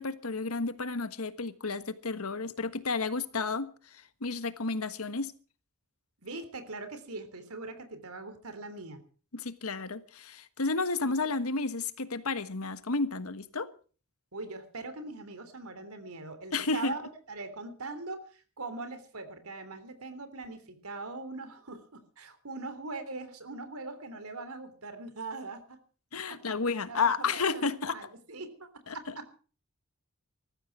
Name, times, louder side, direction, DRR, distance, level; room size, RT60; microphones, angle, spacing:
voice 1, 0.0-5.3 9.3-13.7 16.5-16.9 26.1-28.0 28.9-29.1, left 4 dB, 85° left, 1.4 m, -32 dB
voice 2, 6.2-9.0 14.3-25.8 26.3-26.4 26.9-28.7 28.9-29.2, right 3 dB, 85° right, 3.5 m, -41 dB
19.5 x 14.5 x 4.8 m
head